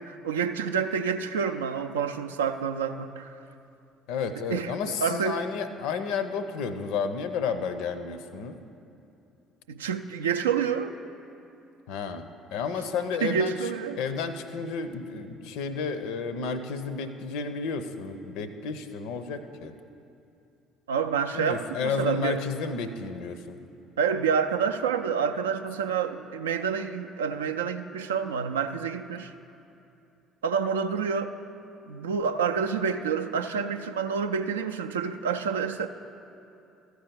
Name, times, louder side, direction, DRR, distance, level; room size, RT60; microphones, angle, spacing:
voice 1, 0.0-3.4 4.5-5.4 9.7-10.9 13.2-14.0 20.9-22.5 24.0-29.3 30.4-31.3 31.9-35.9, right 6 dB, 75° right, 7 dB, 0.3 m, -28 dB
voice 2, 4.1-8.6 11.9-13.5 14.0-19.7 21.3-23.6, left 5 dB, 60° left, 10 dB, 0.5 m, -32 dB
14.0 x 4.7 x 6.7 m, 2.7 s
figure-of-eight pair, 55°, 0 cm